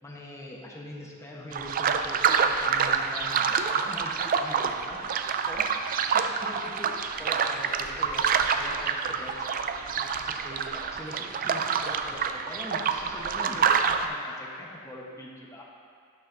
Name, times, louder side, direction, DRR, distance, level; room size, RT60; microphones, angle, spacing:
voice 1, 0.0-5.0 5.5-5.6 6.1-9.3 10.0-15.6, left 1 dB, 15° left, -3 dB, 1.0 m, -43 dB
sound 1, 1.5-14.1, right 6 dB, 40° right, 0.3 m, -27 dB
11.5 x 7.0 x 2.6 m, 2.2 s
head